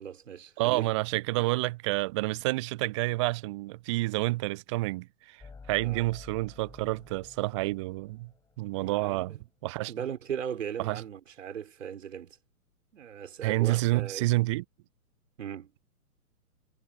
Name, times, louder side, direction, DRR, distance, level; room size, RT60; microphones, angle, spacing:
voice 1, 0.0-0.9 5.8-6.1 8.8-9.4 9.9-12.4 12.9-14.3 15.4-15.7, right 8 dB, 60° right, 4.7 m, -38 dB
voice 2, 0.6-5.4 5.7-8.3 8.6-9.4 9.6-9.9 10.8-11.0 13.4-14.6, right 20 dB, 20° right, 0.6 m, -29 dB
sound 1, 5.4-9.4, left 4 dB, 10° left, 7.1 m, -51 dB
figure-of-eight pair, 115°, 44 cm